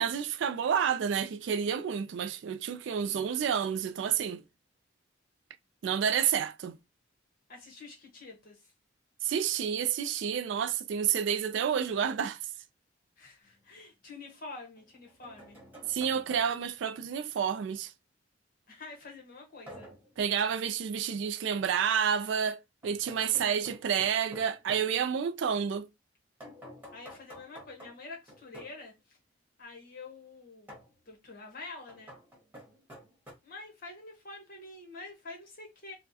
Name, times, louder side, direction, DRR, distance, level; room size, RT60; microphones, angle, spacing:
voice 1, 0.0-4.4 5.8-6.8 9.2-12.4 15.9-17.9 20.2-25.9, right 8 dB, 65° right, 0.3 m, -29 dB
voice 2, 7.5-8.7 13.2-15.6 18.7-19.9 23.3-23.6 25.1-25.2 26.9-29.2 29.6-30.7 31.1-32.1 33.4-35.9, left 3 dB, 45° left, 1.2 m, -47 dB
sound 1, 13.4-13.5 14.8-16.8 19.7-20.1 22.8-24.9 26.4-28.8 30.7-30.9 31.9-33.3, equal, 10° right, 1.4 m, -50 dB
4.4 x 2.1 x 2.7 m
head